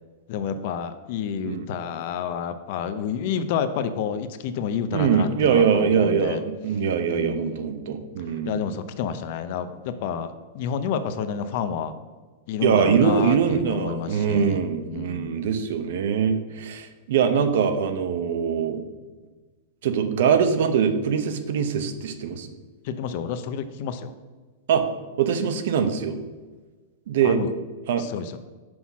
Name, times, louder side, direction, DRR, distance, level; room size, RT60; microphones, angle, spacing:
voice 1, 0.3-6.4 7.0-7.7 8.4-11.9 12.5-15.3 22.8-24.1 27.2-27.5 28.0-28.4, left 7 dB, 45° left, 11 dB, 0.6 m, -29 dB
voice 2, 4.9-8.6 12.6-18.8 19.8-22.5 24.7-24.8 25.2-26.2 27.1-27.4 27.9-28.0, right 7 dB, 60° right, 9 dB, 0.8 m, -23 dB
6.1 x 5.7 x 6.0 m, 1.3 s
supercardioid pair, 170°, 0 cm